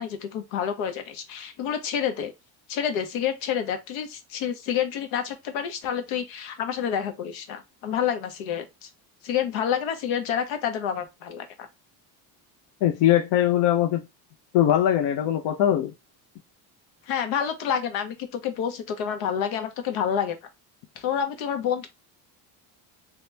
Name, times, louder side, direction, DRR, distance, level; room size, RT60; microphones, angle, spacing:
voice 1, 0.0-2.3 2.7-8.9 9.2-11.7 17.1-20.4 21.0-21.9, left 8 dB, 85° left, 1.0 m, -28 dB
voice 2, 12.8-14.0 14.5-15.9, left 11 dB, 65° left, 0.7 m, -21 dB
3.1 x 2.9 x 3.3 m
cardioid pair, 140°, 46 cm